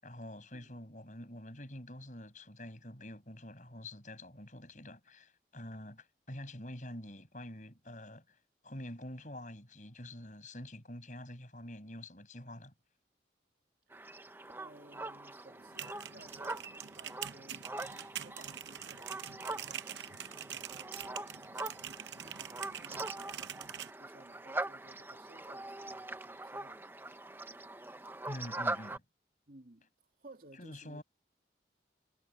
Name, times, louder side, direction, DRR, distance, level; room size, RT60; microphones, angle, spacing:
voice 1, 0.0-8.4 8.6-12.7 28.2-29.0 30.6-31.0, left 1 dB, 45° left, 6.8 m, -47 dB
sound 1, 13.9-29.0, right 2 dB, 10° right, 0.8 m, -43 dB
voice 2, 14.6-21.1 22.2-23.5 24.0-26.8 29.5-29.9 30.2-31.0, right 2 dB, 50° right, 2.9 m, -58 dB
sound 2, 15.6-23.9, right 10 dB, 80° right, 0.8 m, -45 dB
head